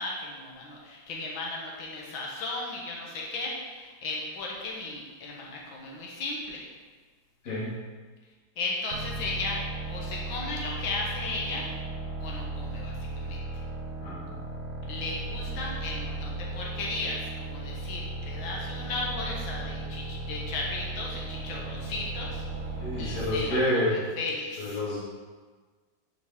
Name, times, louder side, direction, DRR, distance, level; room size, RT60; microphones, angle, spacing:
voice 1, 0.0-6.7 8.6-9.6 9.9-11.7 12.2-13.4 14.8-24.8, left 2 dB, 80° left, -3 dB, 2.0 m, -35 dB
voice 2, 7.4-7.8 14.0-14.4 22.8-24.0 24.6-25.0, left 1 dB, 55° left, -8 dB, 2.7 m, -28 dB
sound 1, 8.9-23.6, right 2 dB, 55° right, 0.9 m, -36 dB
10.5 x 5.1 x 3.6 m, 1.4 s
omnidirectional pair, 2.1 m